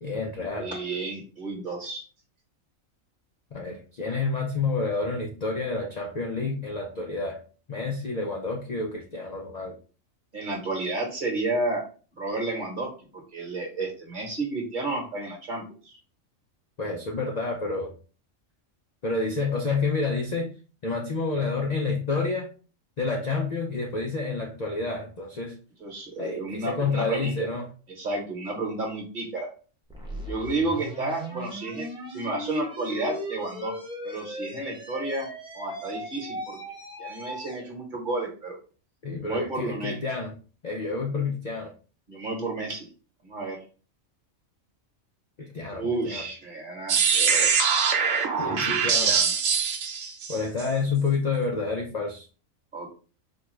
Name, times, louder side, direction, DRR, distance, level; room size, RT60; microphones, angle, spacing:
voice 1, 0.0-0.7 3.5-7.4 7.7-9.8 16.8-17.9 19.0-20.5 20.8-22.5 23.0-25.5 26.2-27.7 39.0-40.3 40.6-41.7 45.4-46.3 48.4-49.2 50.3-52.3, left 4 dB, 75° left, 0 dB, 0.3 m, -29 dB
voice 2, 0.6-2.0 10.3-11.8 12.2-16.0 25.8-27.4 28.0-29.5 30.2-33.7 34.0-35.3 35.5-36.6 37.0-38.6 39.2-40.0 42.1-42.9 43.2-43.6 45.7-47.5 48.4-49.3 52.7-52.9, right 2 dB, 40° right, -1 dB, 1.2 m, -31 dB
sound 1, 29.9-37.7, left 1 dB, 5° right, 0.6 m, -38 dB
sound 2, 46.9-50.6, right 6 dB, 70° right, 1.0 m, -23 dB
4.4 x 2.3 x 3.1 m, 0.36 s
omnidirectional pair, 1.4 m